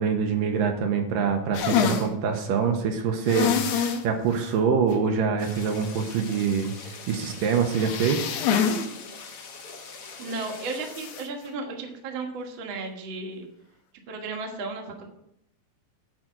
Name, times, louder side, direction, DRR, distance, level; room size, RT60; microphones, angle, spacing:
voice 1, 0.0-8.3, right 6 dB, 75° right, 4 dB, 2.4 m, -25 dB
sound 1, 1.5-2.1 3.3-4.0 4.4-4.5 4.9-5.0 7.7-8.9 9.2-9.3 10.9-11.3, left 7 dB, 80° left, 2.7 m, -25 dB
sound 2, 5.4-10.9, left 5 dB, 60° left, 1.5 m, -43 dB
voice 2, 10.2-13.5 14.1-15.1, right 3 dB, 50° right, 1 dB, 1.5 m, -34 dB
9.0 x 5.0 x 7.4 m, 0.78 s
omnidirectional pair, 4.2 m